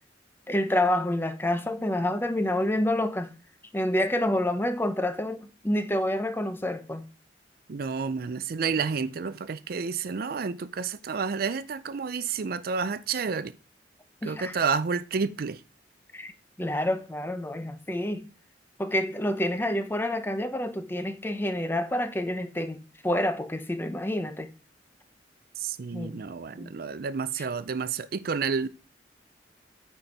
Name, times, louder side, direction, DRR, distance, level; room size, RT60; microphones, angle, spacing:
voice 1, 0.5-3.3 3.7-7.1 14.2-14.6 16.1-16.3 16.6-18.3 18.8-22.8 23.0-24.5 25.9-26.2 26.6-26.7, left 1 dB, 10° left, 0.7 m, -28 dB
voice 2, 7.7-13.5 14.2-15.6 25.6-28.7, right 5 dB, 55° right, 0.5 m, -30 dB
9.0 x 4.4 x 5.3 m
head